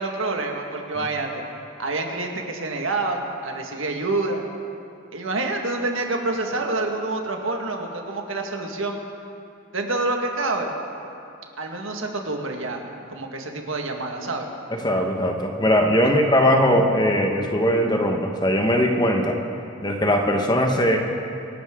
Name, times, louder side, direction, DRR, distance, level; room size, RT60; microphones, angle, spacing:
voice 1, 0.0-1.4 1.8-4.4 5.1-9.0 9.7-10.7 11.6-12.8 13.1-14.5 16.0-16.1, right 2 dB, 75° right, 2 dB, 1.7 m, -27 dB
voice 2, 14.7-19.4 19.8-21.0, equal, 20° left, 2 dB, 1.2 m, -20 dB
25.5 x 12.0 x 3.8 m, 2.7 s
head